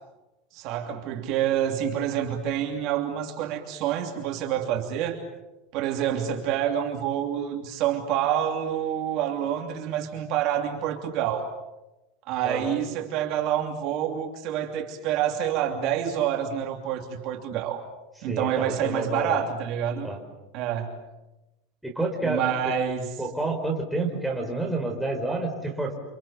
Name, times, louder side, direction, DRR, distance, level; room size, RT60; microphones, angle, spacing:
voice 1, 0.5-5.2 5.7-11.5 12.3-17.8 18.2-20.1 20.5-21.0 22.2-23.2, right 10 dB, 40° right, 3 dB, 3.0 m, -27 dB
voice 2, 12.4-12.8 18.3-19.4 20.0-20.2 21.8-22.7 23.2-25.9, right 2 dB, ahead, -1 dB, 4.8 m, -29 dB
29.0 x 28.0 x 7.2 m, 0.98 s
supercardioid pair, 175°, 0 cm